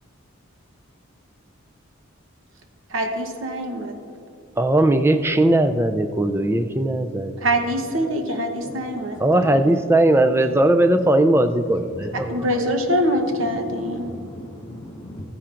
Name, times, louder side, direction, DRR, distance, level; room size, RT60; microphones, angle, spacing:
voice 1, 2.9-3.9 7.4-9.6 12.3-14.1, equal, 70° right, 5 dB, 0.9 m, -24 dB
voice 2, 4.6-7.4 9.2-12.5, right 1 dB, 10° right, 8 dB, 0.3 m, -19 dB
voice 3, 7.6-7.9 8.3-8.8 9.1-9.2 10.9-11.0 11.8-12.5 12.8-13.0 13.3-15.2, left 1 dB, 55° left, -1 dB, 1.1 m, -39 dB
14.5 x 10.0 x 2.5 m, 2.5 s
head